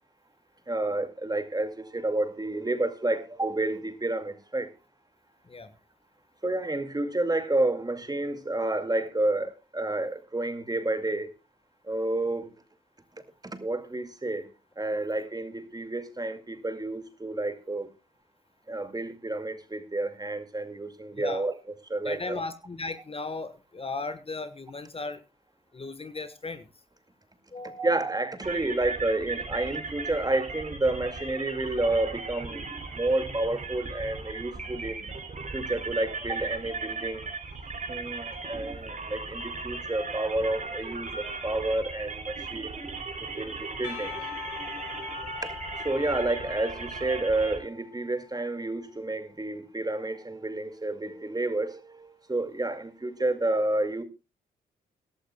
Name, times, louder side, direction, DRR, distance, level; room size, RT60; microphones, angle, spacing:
voice 1, 0.7-4.7 6.4-11.3 11.9-12.5 13.6-14.5 14.8-17.9 18.7-21.5 21.9-22.4 27.8-32.7 32.9-35.0 35.5-37.3 37.9-42.7 43.4-44.1 45.8-54.0, right 2 dB, 20° right, 2.2 m, -30 dB
voice 2, 22.0-25.2 25.7-26.7 27.5-27.9, left 3 dB, 30° left, 1.4 m, -36 dB
sound 1, 28.4-47.6, right 4 dB, 45° right, 3.4 m, -37 dB
Percussion / Church bell, 43.8-48.4, left 10 dB, 85° left, 2.6 m, -42 dB
23.0 x 11.5 x 2.3 m
hypercardioid pair, 45°, 18 cm